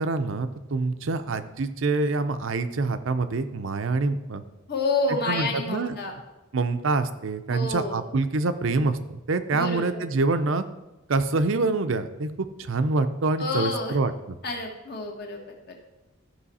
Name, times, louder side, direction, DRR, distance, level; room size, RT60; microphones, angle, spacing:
voice 1, 0.0-4.4 5.3-6.0 6.5-10.6 11.1-14.4, right 3 dB, 65° right, 10 dB, 0.6 m, -26 dB
voice 2, 4.7-6.1 7.5-8.0 9.5-10.0 13.4-14.0 14.4-15.4 15.7-15.8, left 2 dB, 50° left, 1 dB, 1.5 m, -29 dB
12.5 x 5.5 x 4.2 m, 1.0 s
head